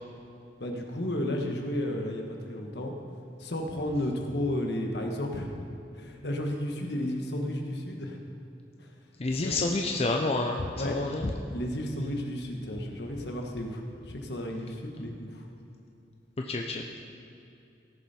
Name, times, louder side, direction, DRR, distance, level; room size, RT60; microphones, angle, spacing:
voice 1, 0.6-2.9 3.4-5.5 5.9-8.2 8.8-8.9 9.4-9.6 10.6-11.1 11.5-15.5, left 1 dB, 70° left, 2 dB, 1.4 m, -33 dB
voice 2, 9.2-11.3 16.5-16.8, left 2 dB, 35° left, 1 dB, 0.6 m, -29 dB
17.5 x 7.1 x 4.3 m, 2.7 s
head